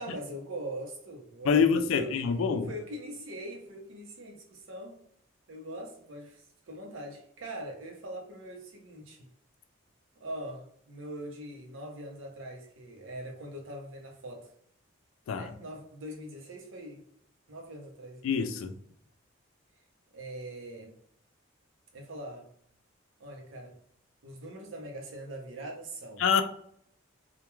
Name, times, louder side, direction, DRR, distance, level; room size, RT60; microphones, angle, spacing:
voice 1, 0.0-2.3 2.7-5.0 5.5-9.3 10.2-14.5 15.3-17.0 17.5-18.3 20.1-20.9 21.9-22.5 23.2-23.7 24.2-26.2, right 1 dB, 75° right, 1 dB, 0.6 m, -42 dB
voice 2, 1.4-2.7 15.3-15.5 18.2-18.8 26.2-26.4, left 6 dB, 75° left, 9 dB, 0.3 m, -25 dB
2.2 x 2.2 x 3.0 m, 0.68 s
head